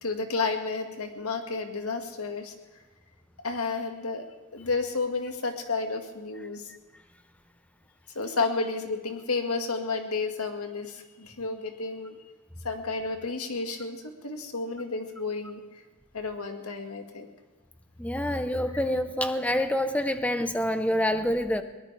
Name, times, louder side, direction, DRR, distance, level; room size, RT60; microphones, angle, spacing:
voice 1, 0.0-2.5 3.4-4.3 4.5-6.6 8.2-12.2 12.6-15.6 16.1-17.3, left 4 dB, 85° left, 5 dB, 1.9 m, -31 dB
voice 2, 18.0-21.6, left 1 dB, 5° left, 9 dB, 0.8 m, -27 dB
22.0 x 19.0 x 3.4 m, 1.3 s
head